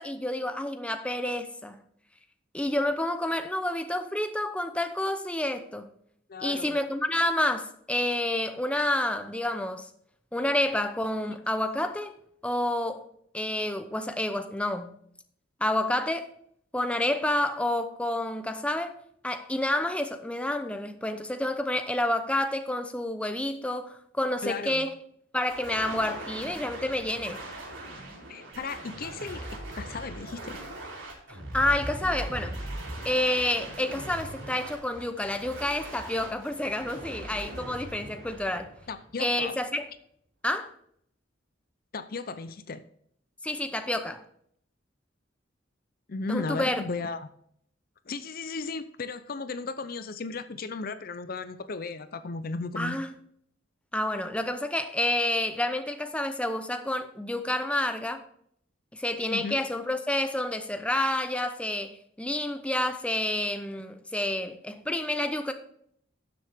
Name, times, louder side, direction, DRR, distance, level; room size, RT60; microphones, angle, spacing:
voice 1, 0.0-1.8 2.5-5.9 6.4-9.9 10.3-12.2 12.4-13.1 13.3-14.9 15.6-16.3 16.7-18.9 19.2-24.9 25.3-27.4 31.3-32.5 33.0-38.7 39.2-39.9 40.4-40.7 43.4-44.2 46.3-46.8 52.8-53.1 53.9-58.2 58.9-65.5, left 1 dB, 5° left, 8 dB, 0.7 m, -29 dB
voice 2, 6.3-6.8 24.4-24.9 28.3-30.6 38.9-39.6 41.9-42.8 46.1-47.3 48.1-53.0 59.3-59.6, left 4 dB, 50° left, 12 dB, 0.6 m, -35 dB
sound 1, 25.5-39.4, right 1 dB, 85° right, 3.6 m, -40 dB
12.5 x 7.4 x 3.5 m, 0.67 s
head